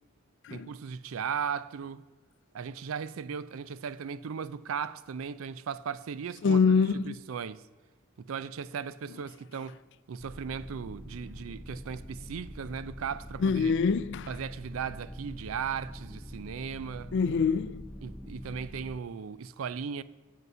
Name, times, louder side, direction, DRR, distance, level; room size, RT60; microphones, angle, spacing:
voice 1, 0.5-2.1 2.5-7.6 8.2-9.8 10.1-13.7 14.3-17.1 18.0-20.0, right 6 dB, 80° right, 0.4 m, -37 dB
voice 2, 6.4-7.2 13.4-14.3 17.1-17.9, left 5 dB, 60° left, 0.4 m, -25 dB
sound 1, 10.2-19.0, equal, ahead, 0.4 m, -45 dB
8.1 x 7.7 x 5.4 m
head